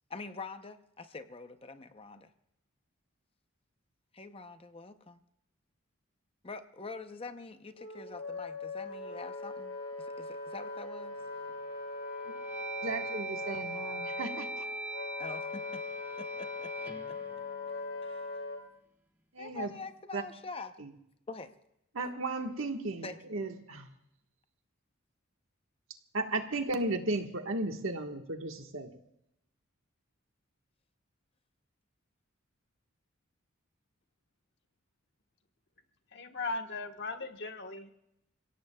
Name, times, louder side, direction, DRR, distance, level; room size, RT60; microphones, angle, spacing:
voice 1, 0.1-2.3 4.1-5.2 6.4-11.2 15.2-15.8 16.2-17.2 18.0-18.4 19.4-20.7 21.3-21.5 23.0-23.2, left 3 dB, 25° left, 9 dB, 0.7 m, -45 dB
Wind instrument woodwind instrument, 7.8-18.6, left 3 dB, 75° left, 4.4 m, -40 dB
sound 1, 11.2-11.6 12.1-18.3, right 3 dB, 10° right, 1.1 m, -42 dB
voice 2, 12.8-14.6 19.3-19.7 20.1-20.2 20.8-20.9 21.9-23.9 26.1-28.9, right 2 dB, 70° right, 4 dB, 1.4 m, -35 dB
voice 3, 36.1-37.9, left 3 dB, 55° left, 5 dB, 1.3 m, -38 dB
30.0 x 17.0 x 2.3 m, 0.82 s
head